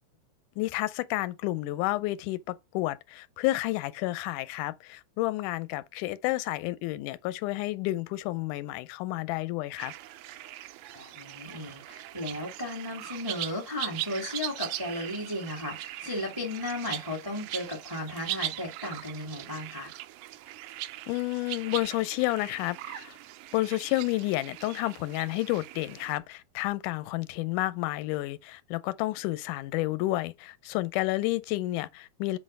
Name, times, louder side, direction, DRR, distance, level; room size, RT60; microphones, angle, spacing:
voice 1, 0.6-9.9 21.1-23.2 23.5-32.4, left 18 dB, 90° left, 2.1 m, -30 dB
sound 1, 9.8-26.2, right 14 dB, 80° right, 1.9 m, -40 dB
voice 2, 10.9-19.9, left 1 dB, 10° right, 1.0 m, -35 dB
7.7 x 2.6 x 5.3 m
omnidirectional pair, 3.5 m